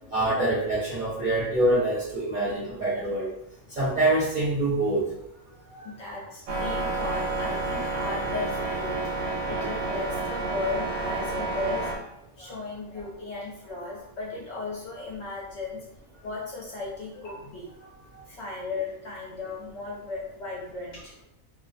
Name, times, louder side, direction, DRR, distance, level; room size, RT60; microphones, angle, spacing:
voice 1, 0.1-3.3 3.8-5.0 5.7-5.8, right 1 dB, 45° right, -9 dB, 0.6 m, -25 dB
voice 2, 5.8-15.8 16.2-17.7 18.3-21.1, left 3 dB, 65° left, -4 dB, 0.7 m, -36 dB
sound 1, 6.5-12.0, right 3 dB, 90° right, 1.0 m, -30 dB
2.4 x 2.1 x 2.5 m, 0.83 s
omnidirectional pair, 1.5 m